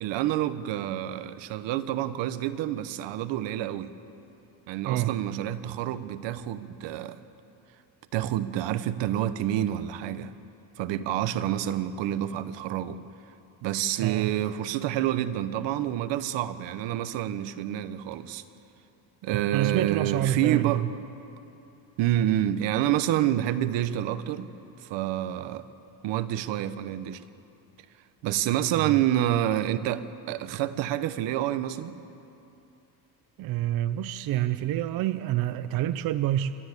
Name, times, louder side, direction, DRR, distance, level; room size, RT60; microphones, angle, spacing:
voice 1, 0.0-3.9 4.7-7.2 8.1-10.3 10.8-13.0 13.6-18.4 19.2-20.8 22.0-24.5 24.8-25.7 26.0-27.2 28.2-32.0, right 12 dB, 75° right, 13 dB, 1.0 m, -28 dB
voice 2, 14.0-14.3 19.5-20.9 28.7-29.0 33.4-36.5, right 13 dB, 55° right, 13 dB, 0.5 m, -27 dB
27.0 x 12.0 x 8.2 m, 2.8 s
cardioid pair, 165°, 44 cm